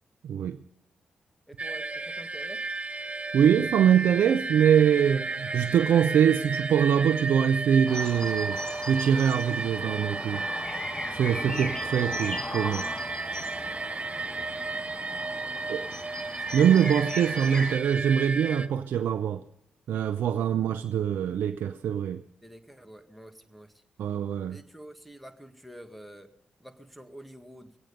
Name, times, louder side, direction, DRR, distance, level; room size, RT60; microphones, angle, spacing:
voice 1, 0.2-0.6 3.3-8.6 8.9-10.5 11.1-12.9 15.7-15.8 16.5-19.4 19.9-22.2 24.0-24.6, right 8 dB, 75° right, 0.6 m, -23 dB
voice 2, 1.5-2.7 14.3-14.6 22.4-23.8 24.5-26.3 26.6-27.8, right 1 dB, ahead, 1.9 m, -48 dB
sound 1, 1.6-18.7, right 3 dB, 35° right, 0.9 m, -33 dB
sound 2, 7.9-17.8, left 2 dB, 25° left, 0.7 m, -38 dB
22.5 x 8.9 x 5.2 m
supercardioid pair, 45°, 3 cm